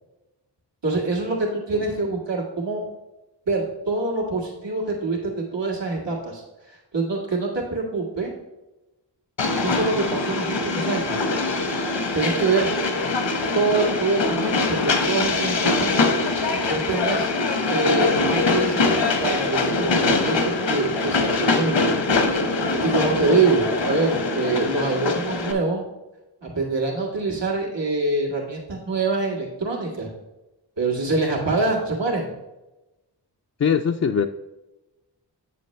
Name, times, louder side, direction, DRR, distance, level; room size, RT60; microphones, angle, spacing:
voice 1, 0.8-2.8 3.5-8.3 9.6-11.2 12.1-12.7 13.5-16.0 16.7-17.3 17.7-21.9 22.8-25.9 26.4-30.1 30.8-32.3, right 3 dB, 80° right, -2 dB, 1.9 m, -25 dB
Train, 9.4-25.5, left 3 dB, 80° left, 1.1 m, -23 dB
voice 2, 33.6-34.3, left 7 dB, 40° left, 4 dB, 0.4 m, -21 dB
8.5 x 6.8 x 3.2 m, 1.0 s
wide cardioid pair, 50°, 43 cm